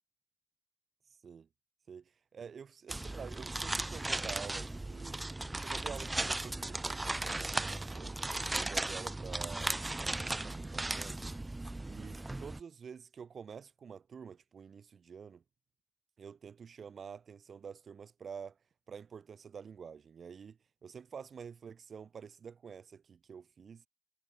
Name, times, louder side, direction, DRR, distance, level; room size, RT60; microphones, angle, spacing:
voice 1, 1.9-5.2 5.6-8.2 8.5-11.2 11.8-15.4 16.2-18.6 18.9-23.8, right 6 dB, 40° right, 1.3 m, -48 dB
sound 1, 2.9-12.6, right 2 dB, 10° right, 2.0 m, -36 dB
cardioid pair, 130°, 0 cm